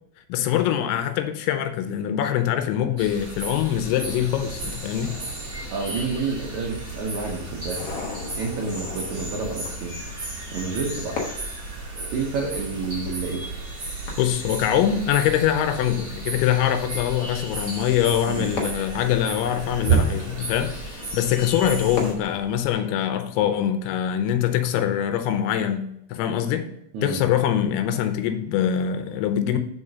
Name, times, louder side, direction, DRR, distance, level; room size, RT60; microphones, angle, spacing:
voice 1, 0.3-5.2 14.2-26.7 27.0-29.6, left 10 dB, 90° left, 2.6 m, -23 dB
sound 1, 3.0-22.1, right 4 dB, 30° right, 1.4 m, -32 dB
sound 2, 4.0-22.7, left 4 dB, 60° left, 1.6 m, -39 dB
voice 2, 5.7-7.9 8.3-10.0 10.5-11.3 12.1-13.5 18.3-18.5 26.9-27.2, right 4 dB, 80° right, 1.6 m, -29 dB
5.0 x 4.8 x 5.3 m
omnidirectional pair, 4.5 m